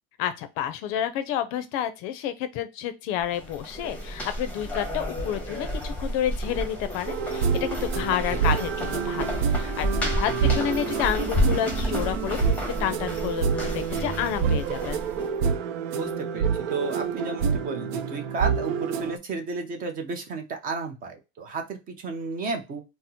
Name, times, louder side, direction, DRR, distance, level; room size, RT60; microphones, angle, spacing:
voice 1, 0.2-12.5 12.8-15.0, left 10 dB, 50° left, 11 dB, 0.5 m, -30 dB
sound 1, 3.2-15.3, equal, 5° left, 0.9 m, -31 dB
sound 2, 7.1-19.2, right 6 dB, 80° right, 0.6 m, -27 dB
voice 2, 10.3-10.6 15.9-22.8, right 3 dB, 30° right, 5 dB, 0.6 m, -33 dB
4.1 x 2.0 x 2.7 m, 0.26 s
cardioid pair, 160°, 30 cm